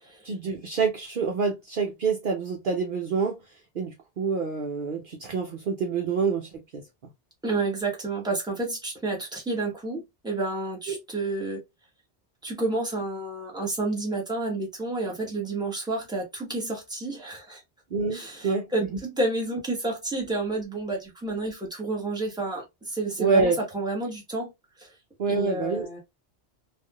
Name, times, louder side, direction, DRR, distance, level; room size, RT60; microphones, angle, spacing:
voice 1, 0.2-6.8 10.9-11.0 17.9-18.7 23.2-23.6 25.2-25.9, right 5 dB, 55° right, 0.7 m, -27 dB
voice 2, 7.4-11.6 12.4-17.6 18.1-24.5 24.8-24.9 25.3-26.0, right 2 dB, 5° right, 1.1 m, -30 dB
3.3 x 2.4 x 2.2 m
omnidirectional pair, 1.2 m